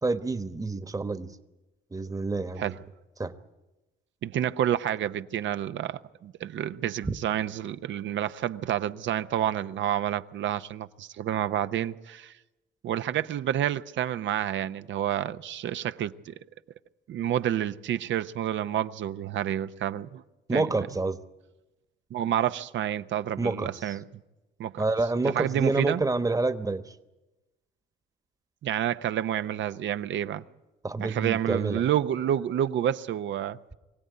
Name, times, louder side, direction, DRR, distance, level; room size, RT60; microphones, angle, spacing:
voice 1, 0.0-1.3 1.9-2.7 3.2-3.3 7.0-7.2 20.5-21.2 23.4-23.7 24.8-26.8 30.8-31.8, right 3 dB, 15° right, 1.2 m, -28 dB
voice 2, 4.2-12.3 12.8-16.3 17.1-20.2 20.5-20.9 22.1-24.0 24.6-24.8 25.2-26.0 28.6-30.4 31.0-33.6, right 11 dB, 70° right, 0.7 m, -29 dB
24.0 x 17.0 x 9.5 m
cardioid pair, 90°, 20 cm